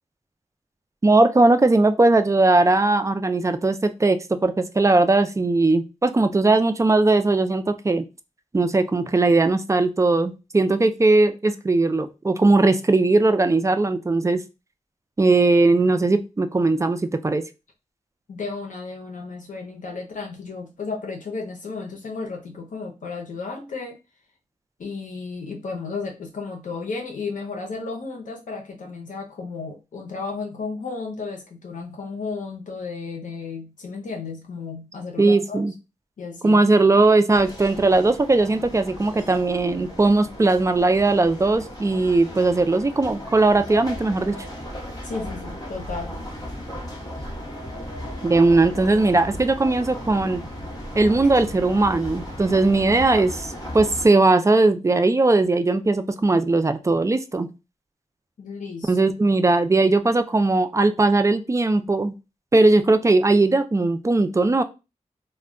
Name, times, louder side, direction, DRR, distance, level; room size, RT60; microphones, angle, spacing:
voice 1, 1.0-8.0 8.5-14.4 15.2-17.4 35.2-35.7 36.4-44.4 48.2-50.4 50.9-57.5 58.9-62.1 62.5-64.6, right 2 dB, 25° right, 9 dB, 0.4 m, -19 dB
voice 2, 18.3-24.0 24.8-35.7 36.2-36.6 45.0-46.2 58.4-59.0, left 4 dB, 85° left, 1 dB, 0.6 m, -33 dB
sound 1, 37.3-54.1, equal, 30° left, 1.0 m, -36 dB
2.2 x 2.1 x 3.6 m, 0.27 s
cardioid pair, 60°, 13 cm